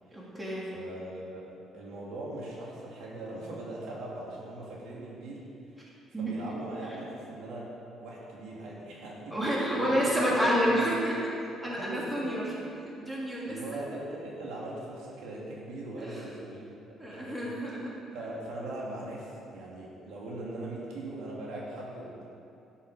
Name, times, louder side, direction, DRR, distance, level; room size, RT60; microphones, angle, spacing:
voice 1, 0.1-0.7 6.1-6.3 6.9-7.0 9.3-11.3 11.6-12.4 12.9-13.6 16.0-16.3 17.0-17.9, equal, 10° right, -6 dB, 2.9 m, -29 dB
voice 2, 0.7-5.5 6.2-7.7 8.0-9.4 9.7-10.9 11.7-12.4 13.4-16.7 17.0-17.5 18.1-22.2, right 1 dB, 85° right, -4 dB, 2.8 m, -40 dB
12.5 x 10.0 x 5.2 m, 2.7 s
cardioid pair, 130°, 0 cm